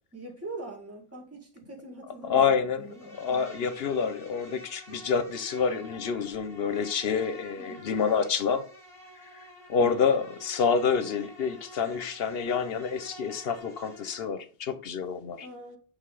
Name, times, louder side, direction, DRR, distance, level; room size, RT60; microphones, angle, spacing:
voice 1, 0.1-3.7 7.6-8.0 9.7-10.1 15.3-15.8, right 2 dB, 15° right, 1.6 m, -43 dB
voice 2, 2.3-8.6 9.7-15.5, left 6 dB, 70° left, 1.0 m, -28 dB
Insect, 2.8-14.3, equal, 5° left, 2.5 m, -49 dB
5.7 x 3.4 x 4.8 m
omnidirectional pair, 1.0 m